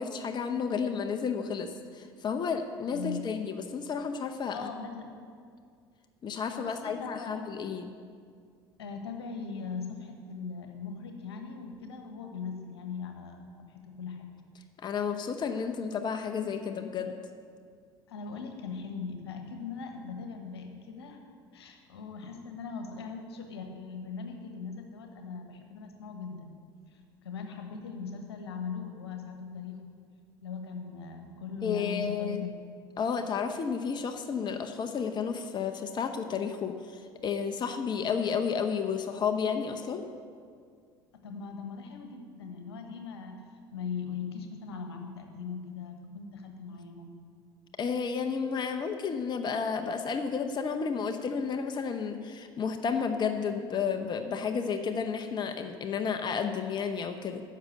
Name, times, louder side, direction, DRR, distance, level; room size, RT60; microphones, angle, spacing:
voice 1, 0.0-4.7 6.2-7.9 14.8-17.1 31.6-32.4 33.0-40.0 47.8-57.4, left 6 dB, 35° left, 6 dB, 0.8 m, -32 dB
voice 2, 2.9-3.4 4.5-5.1 6.5-7.3 8.8-14.3 18.1-21.2 21.5-26.5 26.9-29.8 30.4-32.5 41.2-43.4 43.7-47.2, left 5 dB, 80° left, 5 dB, 1.2 m, -40 dB
10.0 x 6.6 x 7.6 m, 2.2 s
hypercardioid pair, 65°, 13 cm